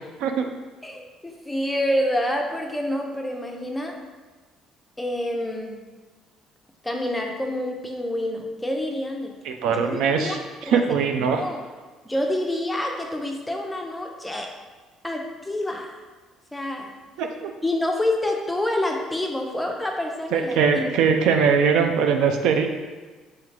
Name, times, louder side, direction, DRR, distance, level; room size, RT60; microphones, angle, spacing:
voice 1, 0.8-4.0 5.0-5.8 6.8-9.3 9.7-10.4 10.7-10.8 11.2-11.6 12.0-14.5 15.0-16.0 16.5-16.9 17.6-20.9, left 1 dB, 10° left, 1 dB, 0.5 m, -27 dB
voice 2, 9.4-11.4 17.2-17.5 20.3-22.7, right 6 dB, 80° right, 5 dB, 0.4 m, -21 dB
3.7 x 3.2 x 3.2 m, 1.3 s
cardioid pair, 105°, 0 cm